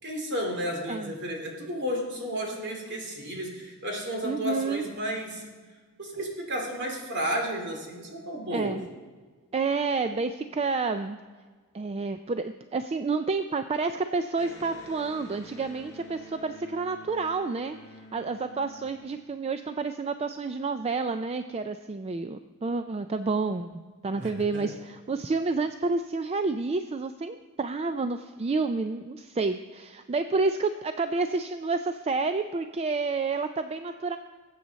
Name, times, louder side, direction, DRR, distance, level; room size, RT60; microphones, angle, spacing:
voice 1, 0.0-5.4 6.0-8.8 24.1-24.8, equal, 55° right, 1 dB, 2.7 m, -32 dB
voice 2, 4.2-4.9 8.5-8.9 9.5-11.2 11.7-17.8 18.1-34.2, right 4 dB, 30° right, 9 dB, 0.4 m, -29 dB
Electric guitar, 14.3-19.8, left 1 dB, 15° left, 2.6 m, -49 dB
20.5 x 8.4 x 4.0 m, 1.5 s
head